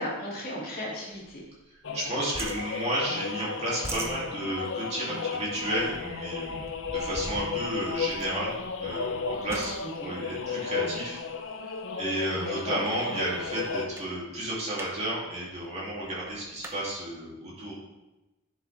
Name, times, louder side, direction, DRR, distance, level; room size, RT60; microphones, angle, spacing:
voice 1, 0.0-1.4 9.8-10.1 12.4-12.8, left 1 dB, 45° left, -5 dB, 2.6 m, -35 dB
sound 1, 1.1-2.0 2.3-3.3 3.6-11.4 12.0-12.3 12.7-12.8 13.1-13.7 13.9-14.1 14.5-14.9 15.2-15.3 15.5-16.8, right 1 dB, 10° right, 0.7 m, -42 dB
sound 2, 1.8-13.9, left 5 dB, 60° left, 0.7 m, -34 dB
voice 2, 1.9-9.8 10.0-11.2 11.6-11.7 12.0-17.7, right 1 dB, 30° right, -6 dB, 2.7 m, -32 dB
10.0 x 6.3 x 3.4 m, 1.0 s
head